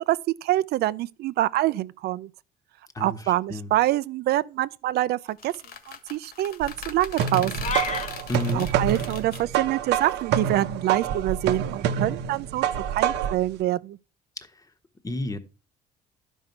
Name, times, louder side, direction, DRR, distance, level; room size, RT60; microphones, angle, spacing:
voice 1, 0.1-2.3 3.0-5.5 6.1-7.5 8.5-14.0, right 15 dB, 70° right, 0.5 m, -25 dB
sound 1, 5.3-9.4, left 7 dB, 65° left, 1.6 m, -40 dB
sound 2, 6.6-13.5, right 8 dB, 90° right, 0.9 m, -27 dB
sound 3, 7.6-8.1, left 5 dB, 45° left, 1.4 m, -28 dB
voice 2, 8.3-8.7 15.0-15.4, left 1 dB, 20° left, 1.2 m, -30 dB
12.0 x 5.4 x 4.5 m
cardioid pair, 110°, 17 cm